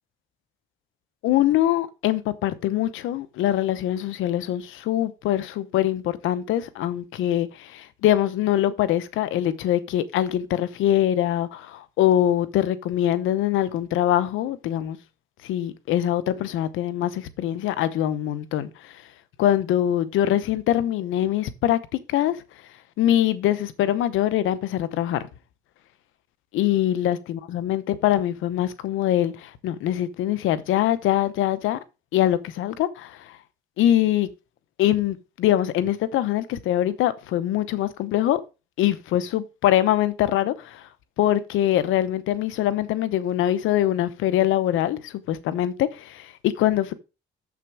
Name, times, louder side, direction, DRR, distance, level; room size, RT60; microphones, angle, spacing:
voice 1, 1.2-15.0 15.4-19.0 19.4-22.4 23.0-25.2 26.5-31.8 32.1-33.4 33.8-34.3 34.8-38.4 38.8-40.9 41.2-46.9, left 12 dB, 85° left, 0.8 m, -23 dB
7.1 x 6.0 x 4.7 m
cardioid pair, 90°, 20 cm